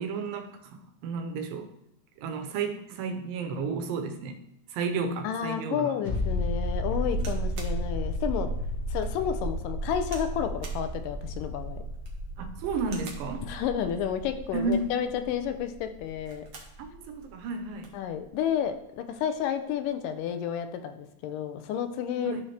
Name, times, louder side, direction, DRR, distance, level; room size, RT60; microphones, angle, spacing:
voice 1, 0.0-1.7 2.2-4.4 4.7-5.9 12.4-13.5 14.5-14.9 16.8-17.9 22.2-22.4, right 4 dB, 85° right, 6 dB, 2.6 m, -32 dB
voice 2, 5.2-8.5 8.9-11.8 13.5-16.5 17.9-22.4, left 9 dB, 80° left, 8 dB, 2.1 m, -31 dB
sound 1, 6.0-17.4 17.7-17.8, equal, 25° left, 1.9 m, -33 dB
sound 2, 7.2-7.8 8.4-8.5 9.0-9.1 10.0-10.3 10.6-10.9 11.9-12.3 12.8-13.3 14.5-15.0 16.1-16.8 17.2-17.3 17.5-18.0 18.9-19.1, right 4 dB, 60° right, 1.3 m, -47 dB
12.5 x 4.2 x 3.3 m, 0.81 s
omnidirectional pair, 3.9 m